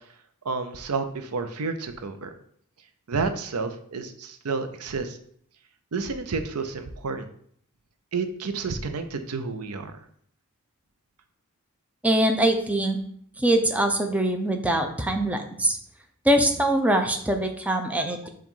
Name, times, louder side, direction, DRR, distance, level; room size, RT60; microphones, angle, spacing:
voice 1, 0.4-2.3 3.1-5.2 5.9-7.3 8.1-9.9, right 4 dB, 85° right, 8 dB, 0.7 m, -30 dB
voice 2, 12.0-13.0 13.4-15.8 16.2-18.3, right 1 dB, 5° right, 4 dB, 0.6 m, -23 dB
7.3 x 2.5 x 5.5 m, 0.63 s
head